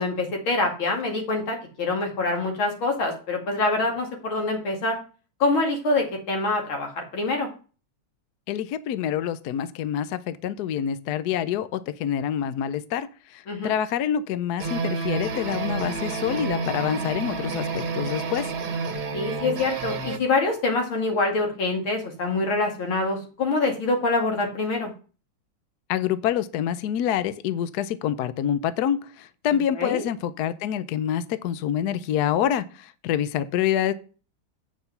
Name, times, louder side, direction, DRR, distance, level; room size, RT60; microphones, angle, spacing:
voice 1, 0.0-5.0 5.4-7.5 13.5-13.7 19.1-24.9 29.5-30.0, left 3 dB, 85° left, 2 dB, 3.0 m, -25 dB
voice 2, 8.5-13.1 13.3-18.5 25.9-33.9, left 10 dB, 65° left, 14 dB, 1.0 m, -26 dB
sound 1, 14.6-20.2, right 4 dB, 55° right, 1.6 m, -29 dB
8.3 x 5.5 x 5.8 m, 0.37 s
omnidirectional pair, 2.2 m